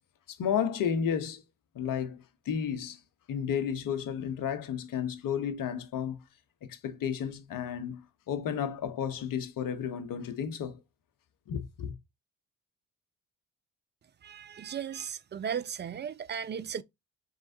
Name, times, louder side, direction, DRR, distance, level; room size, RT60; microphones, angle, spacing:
voice 1, 0.3-1.4 1.7-3.0 3.3-6.2 6.7-10.8 11.5-11.9, left 8 dB, 60° left, 0.9 m, -32 dB
voice 2, 14.2-16.8, right 8 dB, 30° right, 0.4 m, -36 dB
4.7 x 3.1 x 2.6 m
hypercardioid pair, 45°, 38 cm